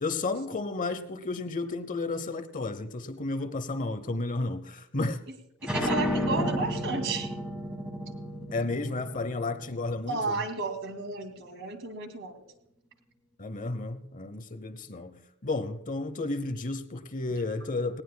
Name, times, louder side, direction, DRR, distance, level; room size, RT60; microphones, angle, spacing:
voice 1, 0.0-5.2 6.4-6.5 8.5-10.4 13.4-18.0, left 3 dB, 35° left, 0.8 m, -32 dB
sound 1, 5.6-10.9, equal, 5° right, 1.7 m, -32 dB
voice 2, 5.7-7.3 10.1-12.4, right 3 dB, 55° right, 2.3 m, -33 dB
19.5 x 18.5 x 2.2 m
head